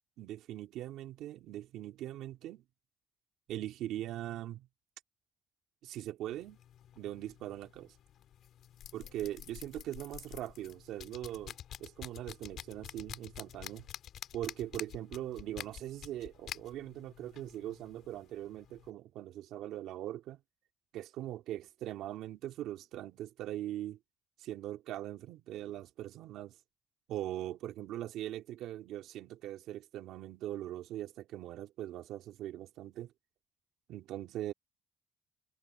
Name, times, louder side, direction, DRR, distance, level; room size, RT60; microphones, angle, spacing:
voice 1, 0.2-2.6 3.5-4.7 5.8-6.6 7.0-7.9 8.9-13.9 14.3-20.4 20.9-24.0 24.4-26.5 27.1-33.1 33.9-34.5, right 13 dB, 90° right, 2.5 m, -41 dB
sound 1, 6.3-18.9, left 10 dB, 75° left, 4.3 m, -49 dB
cardioid pair, 90°, 0 cm